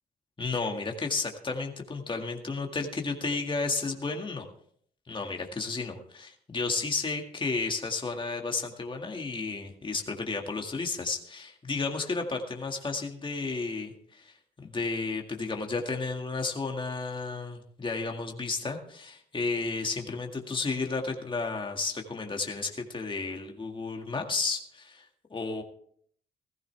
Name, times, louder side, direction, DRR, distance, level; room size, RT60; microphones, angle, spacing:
voice 1, 0.4-4.5 5.1-14.3 14.6-25.1 25.3-25.6, left 3 dB, 25° left, 2 dB, 2.0 m, -32 dB
17.0 x 14.5 x 3.4 m, 0.62 s
cardioid pair, 90°, 19 cm